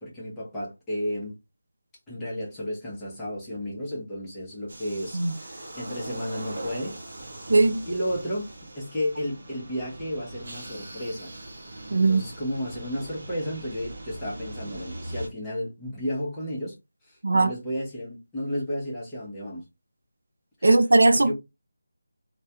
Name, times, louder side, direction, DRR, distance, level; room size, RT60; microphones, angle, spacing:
voice 1, 0.0-1.4 2.1-6.9 7.9-11.3 11.9-16.8 17.0-19.6 20.6-20.7 21.1-21.3, equal, 5° left, 0.6 m, -33 dB
sound 1, 4.7-15.3, right 1 dB, 45° right, 0.7 m, -41 dB
voice 2, 7.5-7.8 11.9-12.2 17.2-17.5 20.6-21.3, right 2 dB, 70° right, 0.4 m, -19 dB
2.2 x 2.2 x 2.7 m
figure-of-eight pair, 175°, 0 cm